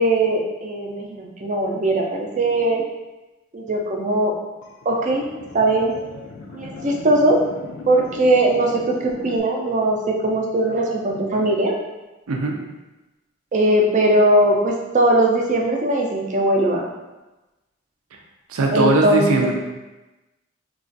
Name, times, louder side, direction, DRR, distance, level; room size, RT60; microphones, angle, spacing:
voice 1, 0.0-2.8 3.5-4.4 4.9-5.3 5.5-5.9 6.5-7.4 7.9-11.8 13.5-16.9 18.7-19.3, right 1 dB, 35° right, 0 dB, 0.4 m, -19 dB
sound 1, 4.6-9.4, left 3 dB, 70° left, 0.4 m, -38 dB
voice 2, 18.5-19.5, right 3 dB, 90° right, 1 dB, 0.5 m, -19 dB
2.4 x 2.3 x 3.8 m, 1.1 s
head